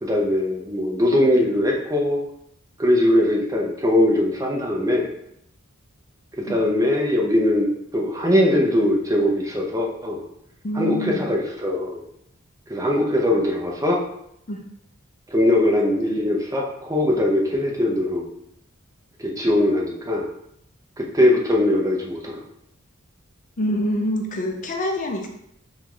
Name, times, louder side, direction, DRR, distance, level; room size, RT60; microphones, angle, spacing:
voice 1, 0.0-2.2 2.8-5.1 6.3-10.2 10.7-12.0 12.7-14.0 15.3-18.3 19.2-20.3 21.0-22.4, left 1 dB, 15° right, -1 dB, 0.6 m, -21 dB
voice 2, 10.6-11.3 14.5-14.6 23.6-25.3, equal, 40° left, 2 dB, 0.5 m, -26 dB
3.5 x 3.1 x 3.7 m, 0.75 s
head